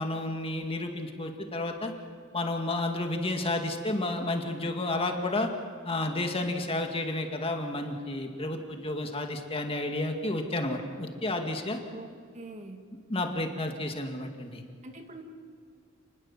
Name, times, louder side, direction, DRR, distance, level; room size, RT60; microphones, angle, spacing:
voice 1, 0.0-1.9 2.3-5.5 5.8-11.8 13.1-14.6, left 2 dB, 30° left, 4 dB, 2.2 m, -31 dB
voice 2, 11.9-12.8 14.8-15.2, right 2 dB, 35° right, 4 dB, 2.3 m, -44 dB
29.5 x 21.0 x 7.5 m, 2.2 s
head